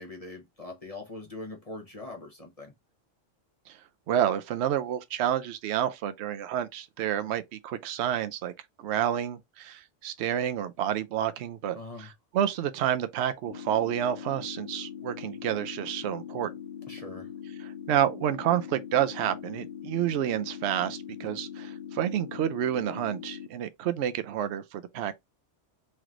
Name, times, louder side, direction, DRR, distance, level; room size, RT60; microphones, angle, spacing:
voice 1, 0.0-2.7 11.7-12.1 16.9-17.3, left 2 dB, 30° left, 1.0 m, -42 dB
voice 2, 4.1-8.5 8.8-16.5 17.6-25.2, right 10 dB, 70° right, 0.8 m, -29 dB
sound 1, 13.5-23.5, left 9 dB, 50° left, 0.5 m, -41 dB
3.2 x 3.1 x 3.7 m
omnidirectional pair, 1.3 m